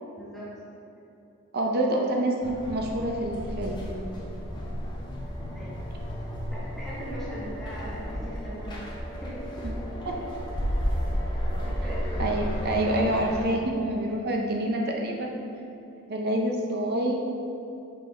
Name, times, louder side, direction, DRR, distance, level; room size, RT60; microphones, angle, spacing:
voice 1, 0.2-0.5 1.8-2.1 5.5-5.8 6.5-8.9 9.2-9.5 10.0-10.1 11.3-12.0, equal, ahead, -9 dB, 1.1 m, -40 dB
voice 2, 1.5-3.8 9.6-9.7 10.1-10.2 12.2-15.3 16.1-17.1, right 1 dB, 45° right, 0 dB, 0.6 m, -27 dB
sound 1, 2.4-13.4, equal, 20° left, 0.9 m, -32 dB
6.1 x 5.4 x 3.5 m, 2.9 s
head